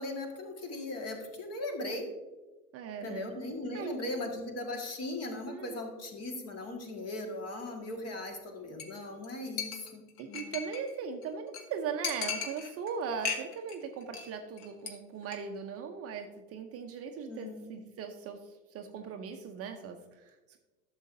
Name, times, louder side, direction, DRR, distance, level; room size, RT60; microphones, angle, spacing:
voice 1, 0.0-2.1 3.0-10.0 10.3-10.5 17.3-17.8, left 2 dB, 35° left, 3 dB, 1.9 m, -38 dB
voice 2, 2.7-3.3 3.7-4.0 5.5-5.8 10.2-20.6, right 6 dB, 30° right, 5 dB, 0.7 m, -39 dB
Chink clink, 8.8-9.0 9.2-9.3 9.6-10.9 11.2-11.3 11.5-11.6 12.0-12.9 13.2-13.8 14.0-14.3 14.6-14.9 15.2-15.4, left 6 dB, 50° left, 1.5 m, -36 dB
12.0 x 7.1 x 2.7 m, 1.2 s
figure-of-eight pair, 85°, 45 cm